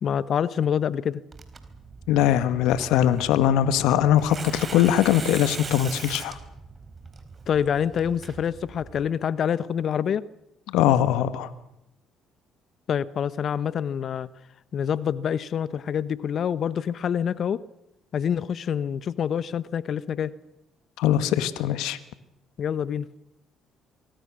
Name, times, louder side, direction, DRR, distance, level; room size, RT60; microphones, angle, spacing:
voice 1, 0.0-1.2 7.5-10.2 12.9-14.3 14.7-17.6 18.1-20.3 22.6-23.1, left 8 dB, 55° left, 0.9 m, -26 dB
Tearing, 1.3-9.1, right 4 dB, 35° right, 4.0 m, -40 dB
voice 2, 2.1-6.4 10.7-11.5 21.0-22.0, left 11 dB, 75° left, 1.5 m, -21 dB
25.5 x 24.0 x 6.3 m
hypercardioid pair, 60°, 0 cm